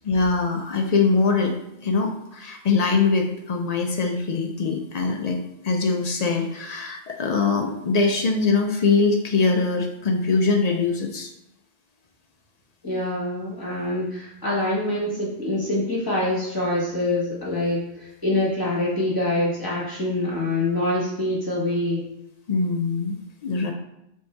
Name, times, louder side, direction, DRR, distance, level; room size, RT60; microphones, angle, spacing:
voice 1, 0.0-1.6 1.8-11.3 22.5-23.2 23.4-23.7, left 4 dB, 60° left, 3 dB, 0.4 m, -22 dB
voice 2, 12.8-22.0, left 1 dB, 20° left, -6 dB, 1.3 m, -25 dB
3.5 x 2.7 x 4.3 m, 0.82 s
omnidirectional pair, 1.1 m